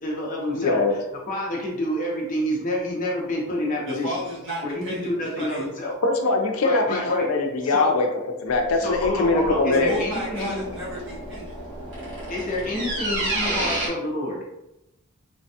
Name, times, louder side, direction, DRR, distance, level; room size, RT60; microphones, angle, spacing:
voice 1, 0.0-1.0 1.3-4.2 4.6-6.0 6.6-7.3 7.6-8.0 8.8-10.7 12.3-14.4, left 1 dB, 40° left, -3 dB, 0.6 m, -28 dB
voice 2, 0.5-0.9 6.0-8.1 8.4-10.0, left 3 dB, 80° left, 3 dB, 0.5 m, -22 dB
voice 3, 3.9-5.7 9.7-11.6, equal, 60° right, -7 dB, 1.1 m, -32 dB
sound 1, 8.5-13.9, right 1 dB, 80° right, 1.2 m, -31 dB
3.3 x 2.2 x 2.8 m, 0.89 s
head